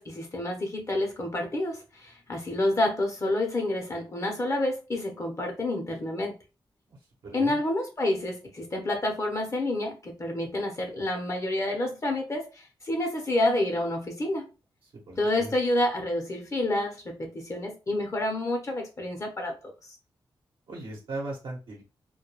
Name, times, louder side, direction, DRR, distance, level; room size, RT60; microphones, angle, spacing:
voice 1, 0.0-6.3 7.3-14.5 15.2-19.5, left 1 dB, 35° left, 0.7 m, -29 dB
voice 2, 7.2-7.6 15.1-15.5 20.7-21.8, right 2 dB, 75° right, 0.9 m, -38 dB
2.2 x 2.2 x 3.0 m
cardioid pair, 80°, 9 cm